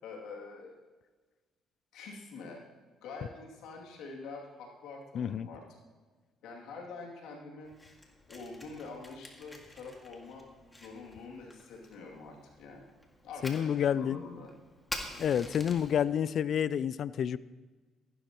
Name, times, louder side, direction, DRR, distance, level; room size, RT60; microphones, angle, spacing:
voice 1, 0.0-0.7 1.9-2.7 3.0-5.6 6.4-7.7 8.3-10.5 10.8-12.9 13.2-14.5, left 4 dB, 80° left, -1 dB, 2.5 m, -46 dB
voice 2, 5.1-5.5 13.4-14.2 15.2-17.4, left 8 dB, 60° left, 18 dB, 0.4 m, -29 dB
Fire, 7.6-16.0, left 1 dB, 15° left, 2.0 m, -47 dB
14.5 x 12.0 x 3.0 m, 1.4 s
supercardioid pair, 80°, 0 cm